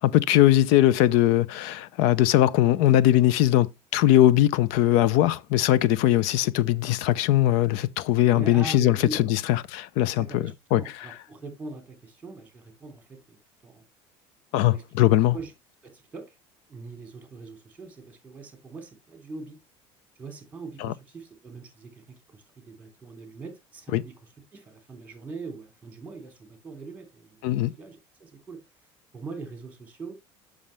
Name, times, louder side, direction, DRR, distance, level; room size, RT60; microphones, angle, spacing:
voice 1, 0.0-10.8 14.5-15.3 20.8-20.9 23.9-24.0 27.4-27.7, left 14 dB, 75° left, 0.6 m, -21 dB
voice 2, 8.3-9.3 10.2-13.8 14.6-15.1 15.3-15.5 15.8-16.4 16.7-19.6 20.2-24.1 24.5-27.4 27.8-28.6 29.1-30.2, right 3 dB, 15° right, 3.0 m, -41 dB
7.3 x 6.4 x 3.2 m
cardioid pair, 135°, 12 cm